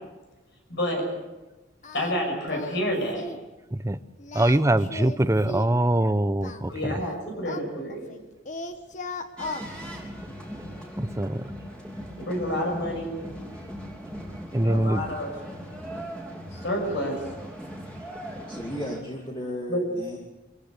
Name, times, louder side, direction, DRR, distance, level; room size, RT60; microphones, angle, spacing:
voice 1, 0.7-1.1 1.9-3.3 6.7-8.1 12.2-13.2 14.6-15.3 16.5-17.2 19.7-19.8, equal, 65° left, 1 dB, 6.7 m, -29 dB
Singing, 1.8-2.2 2.5-2.9 3.1-3.4 4.2-5.8 6.4-8.2 8.4-9.7, left 3 dB, 40° left, 1.4 m, -37 dB
voice 2, 4.3-6.7 11.0-11.4 14.5-15.0, right 1 dB, 15° right, 13 dB, 0.7 m, -23 dB
sound 1, 9.4-19.0, equal, 5° left, 3.5 m, -39 dB
voice 3, 18.5-20.2, equal, 25° left, 0 dB, 2.3 m, -34 dB
24.5 x 15.0 x 8.3 m, 1.2 s
head